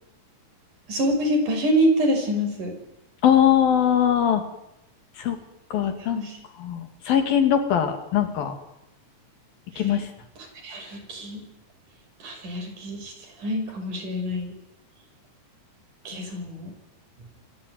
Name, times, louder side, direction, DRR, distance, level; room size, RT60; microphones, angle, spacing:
voice 1, 0.9-2.8 6.0-6.4 9.7-10.0 10.4-11.4 12.2-13.1 13.4-14.5 16.1-16.7, equal, 60° right, 6 dB, 7.2 m, -26 dB
voice 2, 3.2-4.4 5.2-5.4 5.7-6.2 6.6-8.5 9.8-10.0, left 9 dB, 85° left, 7 dB, 4.6 m, -21 dB
28.0 x 21.5 x 9.7 m, 0.87 s
omnidirectional pair, 4.0 m